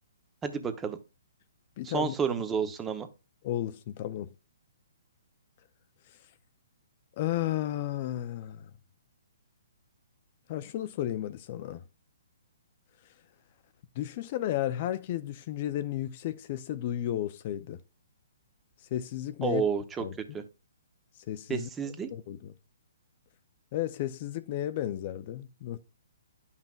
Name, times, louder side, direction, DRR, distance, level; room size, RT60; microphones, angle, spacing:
voice 1, 0.4-1.0 1.8-3.1 19.4-20.0 20.3-20.4 21.5-22.1, right 6 dB, 15° right, 0.8 m, -30 dB
voice 2, 1.8-2.1 3.4-4.3 7.2-8.7 10.5-11.8 14.0-17.8 18.9-19.6 20.0-20.4 21.3-21.7 22.1-22.5 23.7-25.8, left 12 dB, 40° left, 0.5 m, -33 dB
10.5 x 5.7 x 2.4 m
hypercardioid pair, 150°, 0 cm